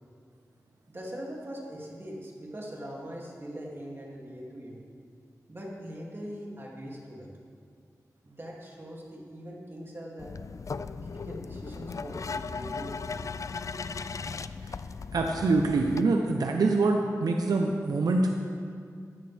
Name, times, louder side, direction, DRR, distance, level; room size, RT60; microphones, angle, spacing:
voice 1, 0.9-4.8 5.5-7.3 8.2-10.3 10.9-13.2, equal, 35° right, -2 dB, 2.4 m, -41 dB
sound 1, 10.2-16.0, left 5 dB, 55° left, 0.4 m, -37 dB
voice 2, 15.1-18.3, right 3 dB, 90° right, 2 dB, 0.7 m, -25 dB
14.5 x 10.5 x 3.4 m, 2.3 s
cardioid pair, 55°, 6 cm